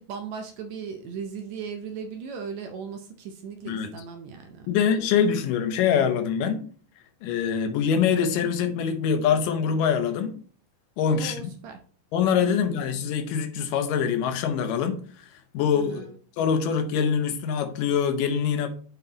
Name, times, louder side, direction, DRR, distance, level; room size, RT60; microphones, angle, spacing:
voice 1, 0.0-4.7 11.1-11.8 12.4-12.8 15.7-16.2, right 6 dB, 75° right, 1.7 m, -37 dB
voice 2, 4.7-6.7 7.2-10.4 11.0-11.6 12.1-15.3 15.5-16.1 16.4-18.7, left 7 dB, 90° left, 2.5 m, -24 dB
7.6 x 4.4 x 3.9 m
omnidirectional pair, 3.7 m